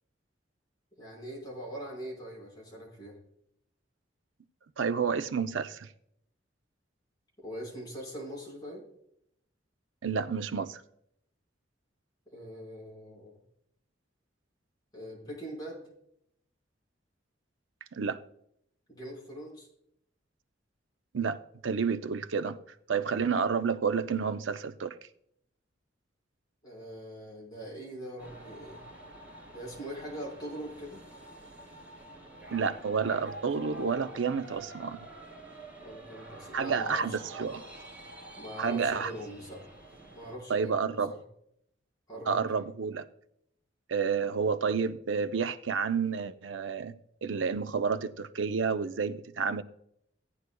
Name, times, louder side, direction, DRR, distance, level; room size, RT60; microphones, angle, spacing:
voice 1, 1.0-3.2 7.4-8.8 12.3-13.3 14.9-15.9 18.9-19.7 26.6-28.8 29.5-31.0 35.8-37.4 38.4-39.7 40.1-41.2 42.1-42.4, equal, 20° left, 4.6 m, -42 dB
voice 2, 4.8-5.9 10.0-10.8 17.9-18.2 21.1-22.6 22.9-24.9 32.5-35.0 36.5-37.7 38.6-39.1 40.5-41.1 42.3-43.1 43.9-46.9 47.2-49.6, right 5 dB, 85° right, 0.6 m, -30 dB
sound 1, 28.2-40.3, right 1 dB, 10° right, 3.8 m, -48 dB
16.5 x 9.6 x 2.2 m
head